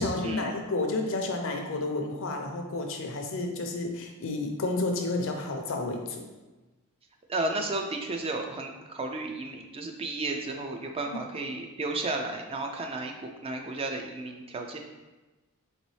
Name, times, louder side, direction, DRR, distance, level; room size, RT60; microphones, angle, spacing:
voice 1, 0.0-6.3 11.0-11.2, left 2 dB, 60° left, 3 dB, 0.5 m, -31 dB
voice 2, 7.3-14.8, right 2 dB, 25° right, 3 dB, 0.3 m, -33 dB
4.1 x 3.0 x 3.1 m, 1.2 s
head